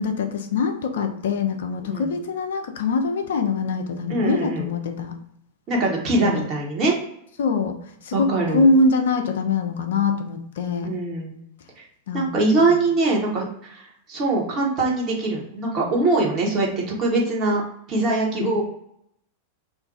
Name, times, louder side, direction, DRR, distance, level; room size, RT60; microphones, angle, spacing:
voice 1, 0.0-5.2 6.3-6.5 7.4-7.8 8.0-11.0 12.1-12.3 12.6-12.7 18.3-18.6, left 3 dB, 60° left, 5 dB, 0.4 m, -23 dB
voice 2, 4.1-4.7 5.7-6.9 8.1-8.7 10.8-11.4 12.1-13.8 14.1-17.6 17.9-18.6, right 2 dB, 35° right, -2 dB, 1.0 m, -22 dB
2.5 x 2.2 x 3.9 m, 0.73 s
figure-of-eight pair, 90°, 0 cm